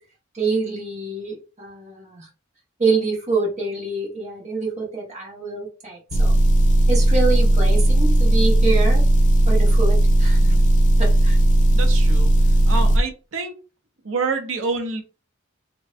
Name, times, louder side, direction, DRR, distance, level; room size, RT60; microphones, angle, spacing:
voice 1, 0.3-2.3 2.8-6.3 6.9-9.0 9.5-10.4 11.0-11.4, right 3 dB, 35° right, -2 dB, 1.0 m, -26 dB
Motor vehicle (road) / Engine, 6.1-13.0, right 1 dB, 40° left, 0.3 m, -16 dB
voice 2, 11.7-12.3 12.7-13.5 14.0-15.0, right 4 dB, 70° right, 4 dB, 0.6 m, -27 dB
2.5 x 2.1 x 2.4 m, 0.34 s
head